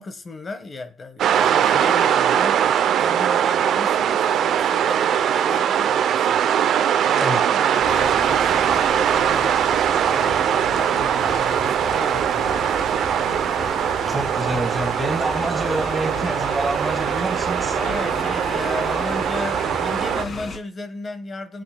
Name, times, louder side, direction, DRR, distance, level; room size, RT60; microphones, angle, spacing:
voice 1, 0.0-6.4 7.0-9.7 10.1-12.8 14.1-14.2 17.8-21.6, left 3 dB, 35° left, 1.3 m, -35 dB
sound 1, 1.2-20.2, right 9 dB, 75° right, 0.6 m, -21 dB
voice 2, 7.2-7.6 14.1-17.8, right 2 dB, 10° right, 2.3 m, -27 dB
sound 2, 7.8-20.6, left 2 dB, 55° left, 2.3 m, -34 dB
17.5 x 7.9 x 2.2 m
cardioid pair, 90°, 0 cm